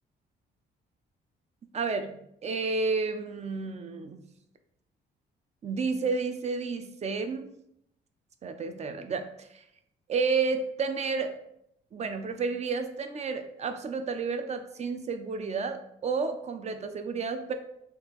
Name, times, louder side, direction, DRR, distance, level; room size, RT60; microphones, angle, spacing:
voice 1, 1.7-2.2 2.4-4.2 5.6-7.5 8.4-9.6 10.1-11.3 11.9-17.5, right 4 dB, 35° right, 7 dB, 0.4 m, -31 dB
3.6 x 2.4 x 2.9 m, 0.76 s
cardioid pair, 90°, 20 cm